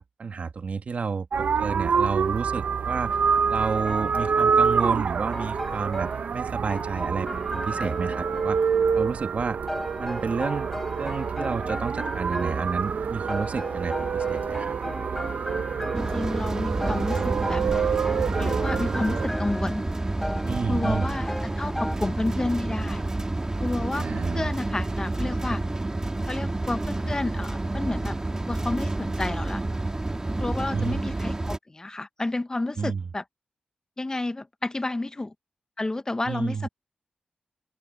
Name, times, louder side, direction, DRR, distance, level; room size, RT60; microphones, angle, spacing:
voice 1, 0.0-3.2 3.5-8.6 8.9-9.6 10.0-10.7 10.9-14.7 20.4-21.1 23.9-24.5 30.7-31.0 32.8-33.1 36.3-36.7, right 5 dB, 60° right, 1.6 m, -30 dB
sound 1, 1.3-19.3, right 6 dB, 75° right, 0.6 m, -27 dB
sound 2, 3.6-6.4 6.7-22.0, left 1 dB, 10° left, 5.8 m, -36 dB
voice 2, 15.9-17.6 18.4-19.8 20.7-21.3 21.6-23.0 23.6-25.6 26.3-28.2 28.5-29.6 30.4-33.2 34.0-35.3 35.8-36.7, left 2 dB, 25° left, 0.7 m, -30 dB
sound 3, 15.9-31.6, right 2 dB, 20° right, 1.9 m, -29 dB
open air
wide cardioid pair, 110°, 3 cm